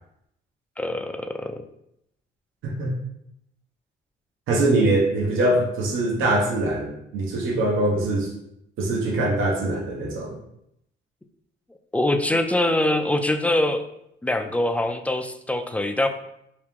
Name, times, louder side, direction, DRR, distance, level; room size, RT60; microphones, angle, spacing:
voice 1, 0.8-1.6 11.9-13.8 14.2-16.1, left 1 dB, 5° left, 6 dB, 0.3 m, -23 dB
voice 2, 2.6-3.0 4.5-8.3 8.8-10.4, right 2 dB, 85° right, -2 dB, 0.9 m, -23 dB
3.0 x 2.8 x 3.5 m, 0.78 s
cardioid pair, 90°, 20 cm